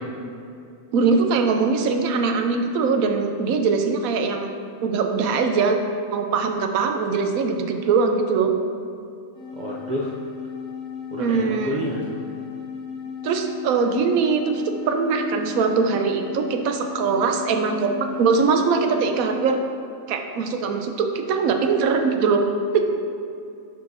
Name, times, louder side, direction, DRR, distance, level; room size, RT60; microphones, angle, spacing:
voice 1, 0.9-4.5 4.8-5.8 6.1-8.5 11.2-11.9 13.2-19.6 20.1-22.4 22.7-22.8, right 5 dB, 85° right, 5 dB, 1.1 m, -22 dB
sound 1, 9.3-19.7, left 7 dB, 85° left, 2.2 m, -35 dB
voice 2, 9.5-10.1 11.1-12.2, equal, 55° right, -4 dB, 0.5 m, -29 dB
11.0 x 4.7 x 2.6 m, 2.5 s
omnidirectional pair, 1.4 m